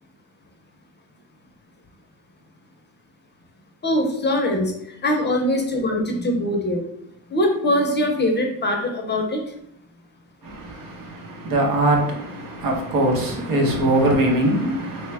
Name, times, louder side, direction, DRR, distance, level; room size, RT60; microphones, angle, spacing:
voice 1, 3.8-4.7 5.0-6.8 7.3-9.4, left 1 dB, 30° left, 0.6 m, -22 dB
voice 2, 10.4-15.1, right 1 dB, 60° right, 0.9 m, -22 dB
3.0 x 2.2 x 3.3 m
cardioid pair, 110°, 38 cm